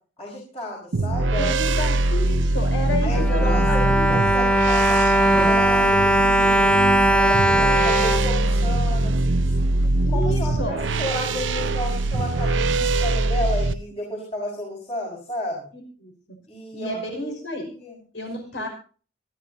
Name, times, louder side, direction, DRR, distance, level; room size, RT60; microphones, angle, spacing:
voice 1, 0.2-1.7 3.0-6.8 7.1-9.5 10.1-15.7 16.5-17.2 17.6-17.9 18.6-18.7, left 1 dB, 30° left, -3 dB, 5.0 m, -32 dB
sound 1, 0.9-13.7, right 2 dB, 75° right, 0.8 m, -23 dB
voice 2, 1.4-4.3 7.5-7.7 10.0-10.8 15.7-16.1 16.7-17.7 18.1-18.7, left 1 dB, 70° left, 3 dB, 5.4 m, -31 dB
Bowed string instrument, 2.9-9.1 9.8-9.9 10.2-10.4, right 1 dB, 5° left, 0.6 m, -20 dB
25.5 x 10.5 x 2.7 m, 0.39 s
head